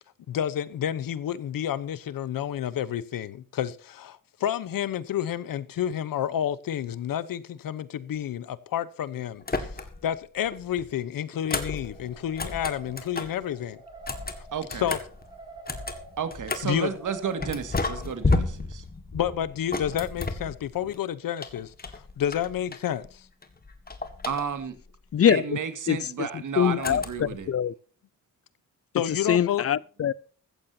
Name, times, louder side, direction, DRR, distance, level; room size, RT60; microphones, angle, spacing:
voice 1, 0.3-13.8 14.7-15.0 16.6-16.9 19.1-23.3 28.9-29.6, left 10 dB, 85° left, 1.0 m, -30 dB
sound 1, 9.4-10.2 10.5-13.4 13.9-16.8 17.4-21.0 21.4-23.1 23.4-24.8 26.8-27.4, left 3 dB, 30° left, 1.9 m, -32 dB
sound 2, 11.5-18.4, right 3 dB, 15° right, 4.1 m, -48 dB
voice 2, 14.5-14.9 16.2-18.8 24.3-24.8 25.3-27.5, right 6 dB, 65° right, 2.1 m, -32 dB
voice 3, 25.1-25.6 25.9-27.7 29.1-30.1, left 9 dB, 45° left, 0.6 m, -24 dB
15.0 x 15.0 x 2.8 m
cardioid pair, 110°, 33 cm